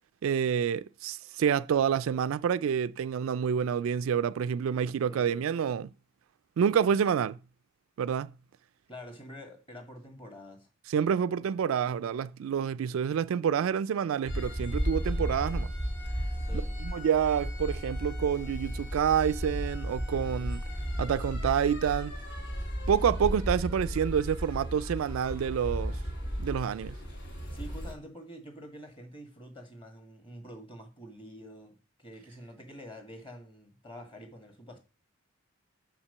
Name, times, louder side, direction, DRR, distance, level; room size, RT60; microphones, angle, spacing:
voice 1, 0.2-5.9 6.6-7.4 8.0-8.3 10.9-15.7 16.5-20.6 21.0-22.1 22.9-26.0 26.4-26.9, right 8 dB, 75° right, 0.3 m, -28 dB
voice 2, 5.1-5.4 8.9-10.7 16.4-16.8 20.2-20.6 27.5-34.8, equal, 25° left, 1.8 m, -47 dB
sound 1, 14.3-27.9, equal, 55° left, 2.5 m, -34 dB
5.8 x 5.0 x 6.6 m
head